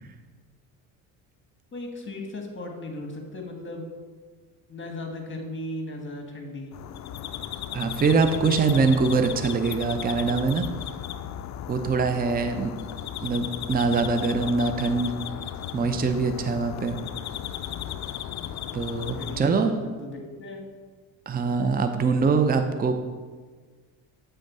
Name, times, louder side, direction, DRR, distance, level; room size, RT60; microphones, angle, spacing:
voice 1, 1.7-3.8 4.7-6.8 19.2-20.6, left 1 dB, 25° left, 2 dB, 1.6 m, -37 dB
sound 1, 6.7-19.4, left 10 dB, 40° left, 0.4 m, -35 dB
voice 2, 7.7-10.6 11.7-12.7 13.2-15.1 15.7-17.0 18.7-19.7 21.3-23.0, right 4 dB, 20° right, 7 dB, 0.6 m, -23 dB
7.7 x 3.8 x 5.3 m, 1.5 s
hypercardioid pair, 65°, 45 cm